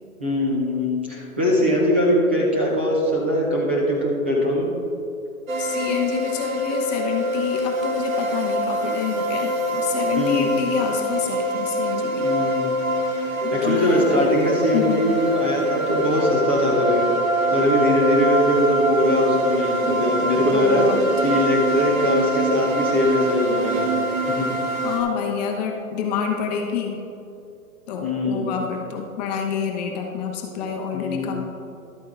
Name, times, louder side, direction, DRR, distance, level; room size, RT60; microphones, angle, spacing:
voice 1, 0.2-4.7 10.1-10.6 12.2-12.7 13.2-17.1 17.5-20.9 21.2-23.9 24.3-24.5 28.0-28.5 30.9-31.3, left 1 dB, 10° right, -3 dB, 0.4 m, -21 dB
sound 1, 5.5-25.0, equal, 70° right, 1.9 m, -24 dB
voice 2, 5.6-12.3 13.4-14.2 14.7-15.0 20.4-21.1 24.8-27.0 27.9-31.4, left 6 dB, 30° left, 2 dB, 1.0 m, -27 dB
12.0 x 8.5 x 3.6 m, 2.7 s
hypercardioid pair, 140°, 43 cm